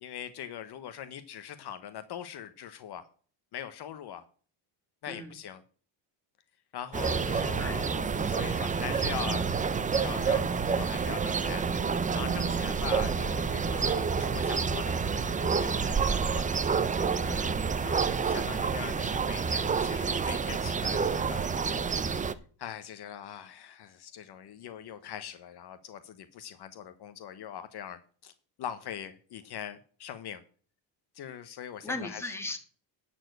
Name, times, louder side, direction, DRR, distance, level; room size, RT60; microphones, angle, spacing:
voice 1, 0.0-3.0 3.5-4.2 5.0-5.6 6.7-9.5 9.8-11.7 12.1-16.5 17.8-21.5 22.6-28.3 28.6-30.4 31.1-32.3, left 9 dB, 50° left, 10 dB, 1.0 m, -42 dB
sound 1, 6.9-22.3, right 5 dB, 15° right, 0.4 m, -28 dB
voice 2, 7.4-7.8 17.2-17.6 31.8-32.6, left 2 dB, 5° left, 4 dB, 1.7 m, -37 dB
11.0 x 4.4 x 8.0 m, 0.42 s
cardioid pair, 130°, 49 cm